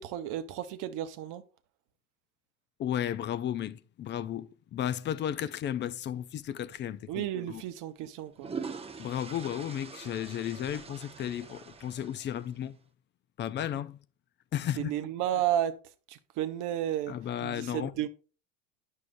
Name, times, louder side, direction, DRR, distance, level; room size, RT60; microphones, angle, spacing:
voice 1, 0.0-1.4 7.1-8.5 14.8-15.7 16.1-17.1 17.4-18.1, right 11 dB, 50° right, 0.7 m, -32 dB
voice 2, 2.8-7.6 9.0-12.8 13.4-14.0 14.5-14.9 17.1-17.9, left 10 dB, 30° left, 0.4 m, -34 dB
sound 1, 6.7-6.9 8.1-12.7, right 5 dB, 15° right, 0.7 m, -43 dB
8.3 x 6.5 x 2.6 m
supercardioid pair, 100°, 39 cm